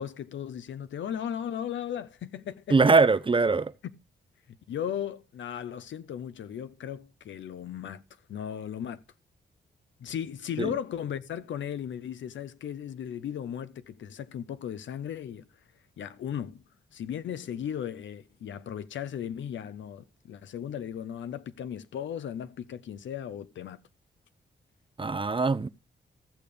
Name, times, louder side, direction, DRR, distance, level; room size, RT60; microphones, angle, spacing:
voice 1, 0.0-2.8 4.7-8.0 8.3-9.0 10.0-15.5 16.0-16.6 16.9-23.8, left 9 dB, 80° left, 0.8 m, -36 dB
voice 2, 2.7-3.7 10.6-10.7 25.0-25.7, right 4 dB, 25° right, 0.6 m, -22 dB
14.5 x 6.8 x 5.2 m
cardioid pair, 55°, 19 cm